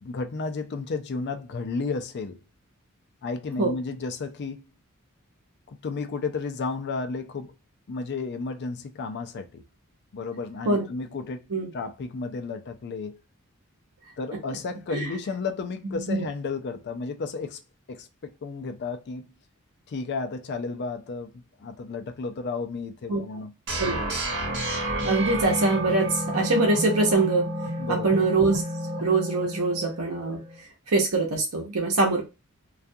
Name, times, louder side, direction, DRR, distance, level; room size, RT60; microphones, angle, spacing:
voice 1, 0.0-2.4 3.2-4.7 5.7-7.6 7.9-9.6 10.1-11.4 11.7-13.2 14.2-17.6 17.9-19.3 19.9-23.5 27.8-28.3, left 4 dB, 50° left, 0.4 m, -33 dB
voice 2, 15.8-16.3 23.1-23.2 23.8-24.1 24.6-27.5 27.9-28.6 29.0-30.4 30.9-32.2, right 3 dB, 85° right, 0.8 m, -24 dB
sound 1, 23.7-30.6, right 1 dB, 55° right, 0.9 m, -30 dB
2.4 x 2.2 x 2.6 m
head